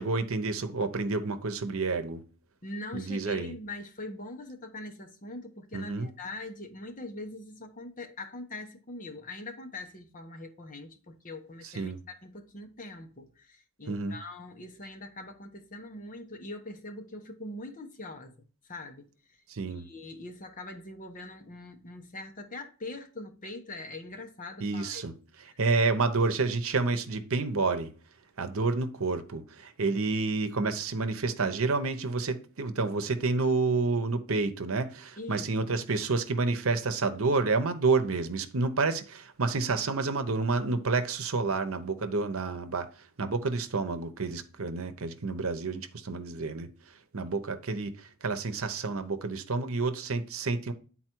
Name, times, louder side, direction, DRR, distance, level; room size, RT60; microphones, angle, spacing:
voice 1, 0.0-2.2 2.9-3.5 5.7-6.1 11.6-12.0 13.9-14.2 19.5-19.9 24.6-25.1 25.6-27.9 28.4-50.7, right 3 dB, 70° right, 0.9 m, -29 dB
voice 2, 2.6-18.4 18.6-19.1 19.8-25.0 35.2-35.7, left 2 dB, 40° left, 1.1 m, -42 dB
9.7 x 4.2 x 4.5 m
head